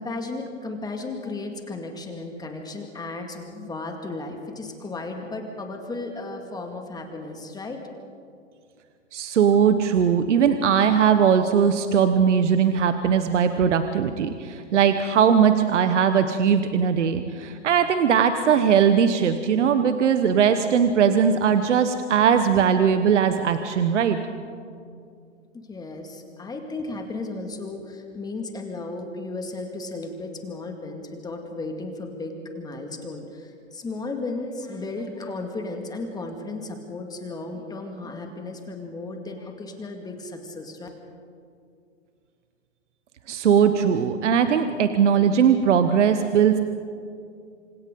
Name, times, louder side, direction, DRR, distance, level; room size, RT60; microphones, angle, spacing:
voice 1, 0.0-7.8 25.5-40.9, left 2 dB, 10° left, 3 dB, 2.1 m, -34 dB
voice 2, 9.1-24.2 43.3-46.6, right 7 dB, 65° right, 9 dB, 1.3 m, -20 dB
27.5 x 26.0 x 3.9 m, 2.3 s
hypercardioid pair, 125°, 38 cm